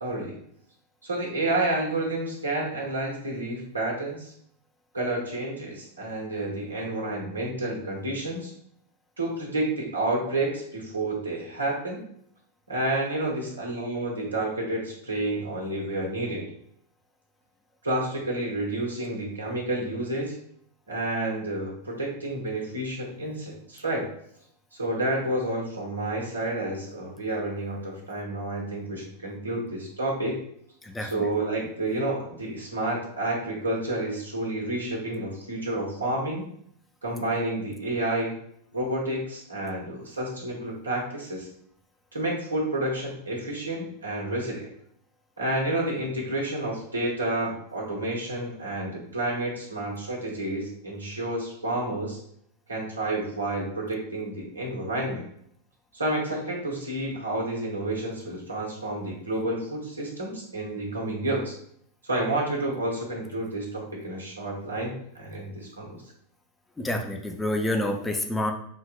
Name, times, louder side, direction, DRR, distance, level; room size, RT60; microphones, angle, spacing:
voice 1, 0.0-0.4 1.0-4.3 4.9-8.5 9.2-12.0 12.7-16.5 17.8-20.3 20.9-24.1 24.7-30.4 31.0-36.4 37.0-38.4 38.7-41.5 42.1-44.7 45.4-52.2 52.7-55.2 55.9-61.5 62.0-66.0, right 1 dB, 80° right, -2 dB, 1.2 m, -30 dB
voice 2, 30.8-31.3 66.8-68.5, left 1 dB, 10° left, 2 dB, 0.5 m, -28 dB
5.0 x 2.8 x 2.4 m, 0.67 s
figure-of-eight pair, 90°, 0 cm